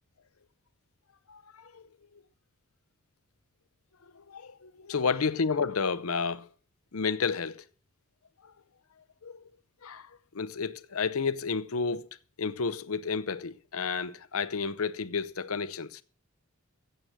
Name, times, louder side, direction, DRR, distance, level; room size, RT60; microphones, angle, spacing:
voice 1, 1.3-1.8 2.1-2.2 4.1-6.5 6.9-7.6 8.4-8.5 9.2-9.5 9.8-12.1 12.4-16.0, left 5 dB, 75° left, 0.8 m, -31 dB
16.0 x 7.8 x 6.2 m
head